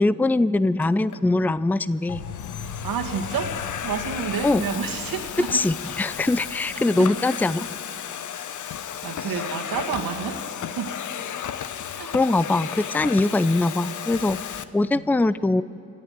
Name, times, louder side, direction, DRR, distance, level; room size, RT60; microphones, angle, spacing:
voice 1, 0.0-2.2 4.4-4.6 5.5-7.7 12.1-15.6, left 2 dB, 5° left, 17 dB, 0.5 m, -22 dB
Domestic sounds home sounds, 0.8-1.2 1.9-14.6, left 9 dB, 50° left, 0.9 m, -34 dB
sound 1, 2.1-7.8, left 7 dB, 75° left, 1.0 m, -39 dB
voice 2, 2.8-5.5 9.0-10.4 10.8-11.0 12.0-12.1 14.9-15.0, right 6 dB, 65° right, 3 dB, 2.1 m, -30 dB
26.0 x 13.0 x 7.7 m, 2.5 s
hypercardioid pair, 40°, 38 cm